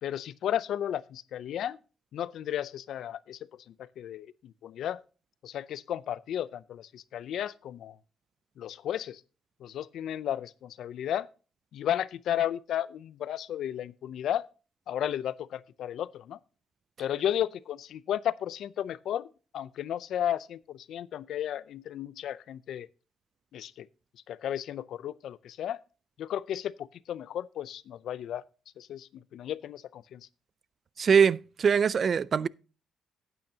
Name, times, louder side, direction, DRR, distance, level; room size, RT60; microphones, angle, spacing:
voice 1, 0.0-1.8 2.1-3.4 3.7-5.0 5.4-8.0 8.6-9.2 9.6-11.3 11.7-14.5 14.9-16.4 17.0-19.3 19.5-22.9 23.5-23.9 24.3-25.8 26.2-28.4 28.8-30.3, left 10 dB, 75° left, 0.5 m, -34 dB
voice 2, 31.0-32.5, right 6 dB, 45° right, 0.3 m, -23 dB
12.0 x 9.1 x 2.8 m
cardioid pair, 90°, 0 cm